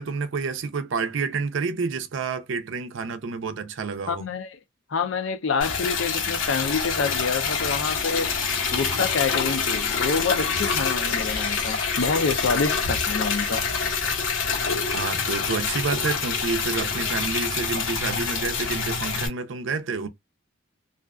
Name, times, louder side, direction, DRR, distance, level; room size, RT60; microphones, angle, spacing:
voice 1, 0.0-4.3 14.9-20.1, right 5 dB, 65° right, 0.5 m, -29 dB
voice 2, 4.1-4.6 4.9-8.3 8.7-13.6, left 5 dB, 70° left, 0.5 m, -27 dB
Liquid, 5.6-19.3, left 5 dB, 90° left, 1.1 m, -26 dB
2.4 x 2.3 x 2.3 m
head